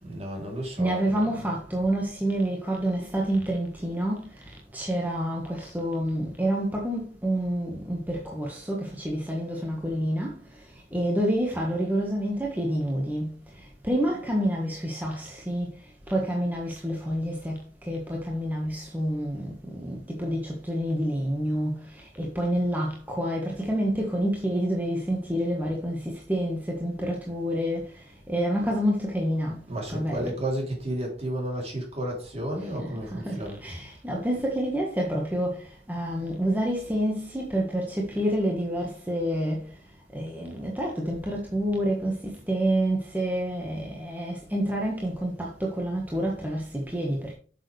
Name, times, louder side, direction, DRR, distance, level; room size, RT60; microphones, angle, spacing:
voice 1, 0.0-1.6 29.7-33.6, right 1 dB, 35° right, 3.3 m, -32 dB
voice 2, 0.8-30.5 32.6-47.3, equal, 10° right, 1.5 m, -28 dB
8.7 x 6.8 x 3.3 m
head